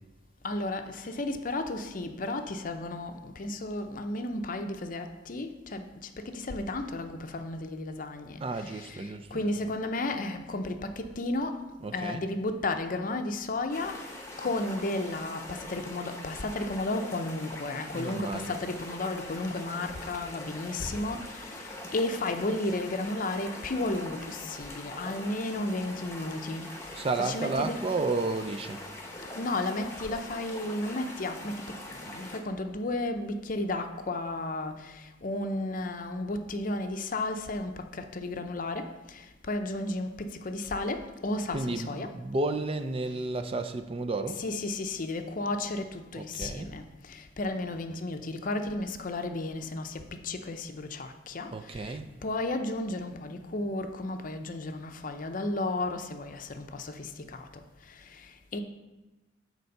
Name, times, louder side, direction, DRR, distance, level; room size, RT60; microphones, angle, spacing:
voice 1, 0.4-5.9 6.2-11.6 11.9-21.7 21.9-26.7 27.2-27.9 29.3-31.6 31.9-42.1 44.3-57.5 58.1-58.6, left 2 dB, 45° left, 7 dB, 0.6 m, -33 dB
voice 2, 8.4-9.5 11.8-12.2 17.9-18.6 26.9-28.8 41.5-44.4 46.1-46.7 51.5-52.1, right 3 dB, 30° right, 8 dB, 0.4 m, -32 dB
sound 1, 13.7-32.4, left 1 dB, 15° left, 0.9 m, -43 dB
6.8 x 4.6 x 6.5 m, 1.1 s
head